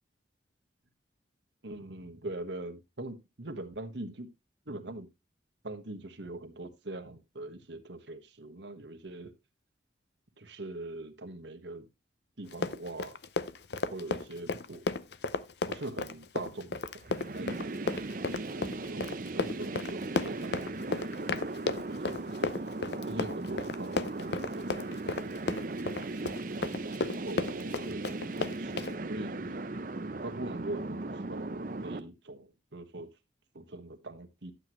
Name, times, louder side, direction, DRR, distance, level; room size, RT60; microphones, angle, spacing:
voice 1, 1.6-4.3 4.7-5.1 5.6-9.3 10.4-11.9 12.4-13.2 13.9-14.9 15.7-16.8 17.2-17.7 18.5-22.5 23.1-24.7 25.0-26.0 27.2-29.6 30.2-33.1 33.5-34.5, right 2 dB, 75° right, 1.5 m, -42 dB
Run, 12.5-29.0, left 3 dB, 65° left, 0.6 m, -34 dB
sound 1, 17.0-32.0, right 2 dB, 45° right, 0.7 m, -38 dB
11.5 x 7.9 x 3.1 m
head